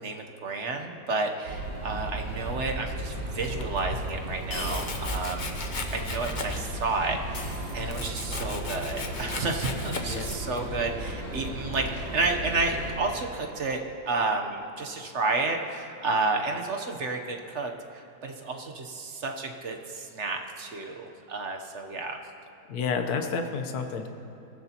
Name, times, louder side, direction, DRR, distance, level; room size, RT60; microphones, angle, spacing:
voice 1, 0.0-5.6 5.9-13.8 14.1-22.2, right 3 dB, 50° right, 3 dB, 1.1 m, -31 dB
sound 1, 1.4-13.0, right 1 dB, 85° right, 3.2 m, -35 dB
sound 2, 3.1-3.2 4.5-5.2 5.6-5.7 7.3-8.2, left 2 dB, 85° left, 2.5 m, -39 dB
Domestic sounds home sounds, 3.4-4.0 4.6-6.8 7.1-10.7, left 3 dB, 35° left, 0.8 m, -37 dB
voice 2, 22.7-24.1, left 5 dB, 65° left, 6 dB, 1.4 m, -30 dB
23.0 x 15.0 x 2.9 m, 2.8 s
omnidirectional pair, 1.8 m